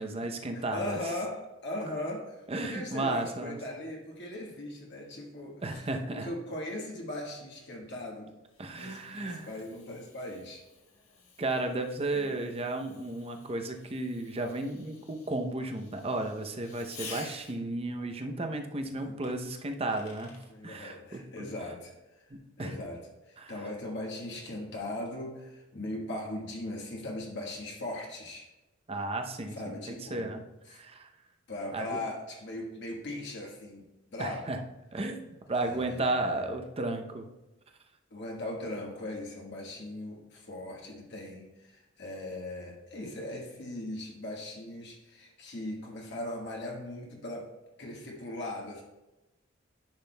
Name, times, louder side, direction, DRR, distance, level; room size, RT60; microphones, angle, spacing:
voice 1, 0.0-1.0 2.5-3.6 5.6-6.3 8.6-9.5 11.4-20.3 20.6-21.5 22.3-22.7 23.4-23.5 28.9-30.4 30.7-31.1 31.7-32.0 34.2-34.6 34.9-37.3, right 2 dB, 30° right, 5 dB, 0.6 m, -34 dB
voice 2, 0.5-8.3 8.7-10.6 12.1-12.5 18.9-19.2 20.5-22.2 22.6-28.5 29.5-30.8 31.5-33.8 34.1-34.5 35.6-36.5 38.1-47.5 47.8-48.8, left 1 dB, 60° left, -1 dB, 1.4 m, -39 dB
Fireworks, 7.9-17.8 19.2-20.5, left 4 dB, 85° left, 1.5 m, -51 dB
10.0 x 6.0 x 2.2 m, 1.0 s
head